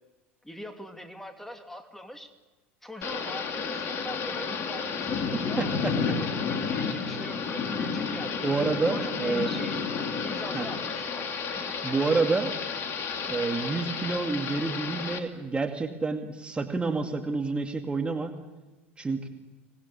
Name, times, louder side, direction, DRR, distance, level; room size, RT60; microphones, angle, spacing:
voice 1, 0.4-2.3 2.8-6.3 6.7-8.4 8.9-9.8 10.2-11.8, equal, 5° left, 5 dB, 2.8 m, -42 dB
Thunder / Rain, 3.0-15.2, left 5 dB, 40° left, 3.0 m, -31 dB
voice 2, 5.3-5.9 8.4-9.5 10.5-10.7 11.8-12.5 13.3-18.3 19.0-19.3, right 3 dB, 15° right, 4 dB, 2.3 m, -28 dB
26.0 x 20.0 x 8.6 m, 1.1 s
hypercardioid pair, 80°, 6 cm